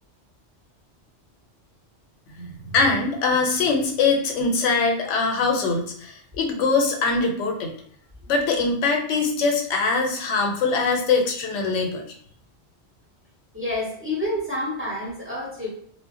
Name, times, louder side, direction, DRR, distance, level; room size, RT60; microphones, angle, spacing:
voice 1, 2.4-7.7 8.3-12.0, left 4 dB, 85° left, 2 dB, 0.9 m, -22 dB
voice 2, 13.5-15.7, left 1 dB, 10° right, -6 dB, 0.8 m, -28 dB
2.2 x 2.0 x 3.5 m, 0.63 s
omnidirectional pair, 1.2 m